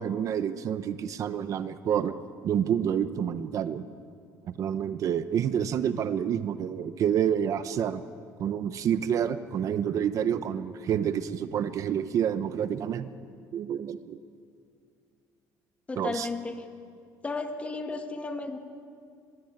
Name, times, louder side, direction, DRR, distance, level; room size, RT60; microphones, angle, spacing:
voice 1, 0.0-2.1 2.4-3.8 4.4-8.0 8.4-13.1 13.5-14.2 16.0-16.3, right 9 dB, 50° right, 11 dB, 0.9 m, -28 dB
voice 2, 15.9-16.7 17.2-18.6, left 3 dB, 20° left, 6 dB, 1.9 m, -34 dB
24.0 x 21.5 x 9.0 m, 2.3 s
cardioid pair, 140°, 7 cm